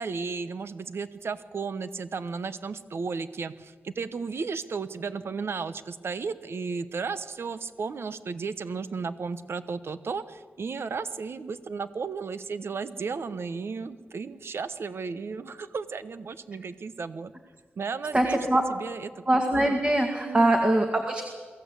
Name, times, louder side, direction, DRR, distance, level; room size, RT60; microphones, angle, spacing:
voice 1, 0.0-17.3 17.8-18.4 18.7-19.2 20.2-20.5, right 5 dB, 70° right, 12 dB, 1.0 m, -34 dB
voice 2, 18.1-18.6 19.3-21.2, right 1 dB, 25° right, 3 dB, 2.0 m, -23 dB
23.0 x 15.5 x 8.2 m, 1.5 s
wide cardioid pair, 85°, 4 cm